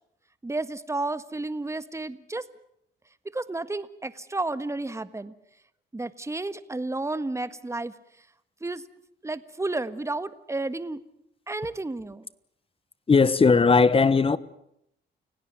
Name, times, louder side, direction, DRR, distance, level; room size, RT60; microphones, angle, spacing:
voice 1, 0.4-2.4 3.2-5.3 5.9-7.9 8.6-8.8 9.2-11.0 11.5-12.3, right 2 dB, 15° right, 1.6 m, -32 dB
voice 2, 13.1-14.4, left 4 dB, 30° left, 1.3 m, -18 dB
29.5 x 17.0 x 9.5 m
cardioid pair, 90°, 20 cm